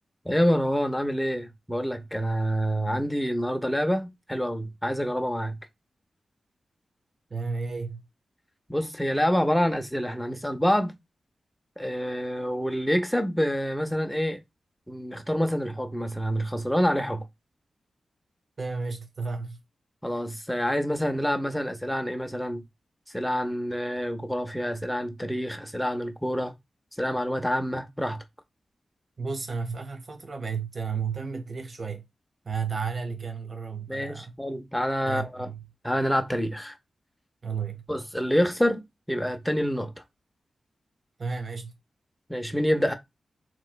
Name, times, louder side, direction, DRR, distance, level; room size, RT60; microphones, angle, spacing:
voice 1, 0.2-5.6 8.7-10.9 11.8-14.4 14.9-17.2 20.0-22.6 23.1-26.5 27.0-28.2 33.9-35.5 35.8-36.8 37.9-38.8 39.1-39.9 42.3-42.9, equal, 5° left, 0.7 m, -27 dB
voice 2, 7.3-8.0 18.6-19.6 29.2-32.0 32.4-34.3 35.1-35.6 37.4-37.8 41.2-41.7, right 5 dB, 55° right, 0.9 m, -32 dB
3.0 x 3.0 x 2.3 m
cardioid pair, 55°, 0 cm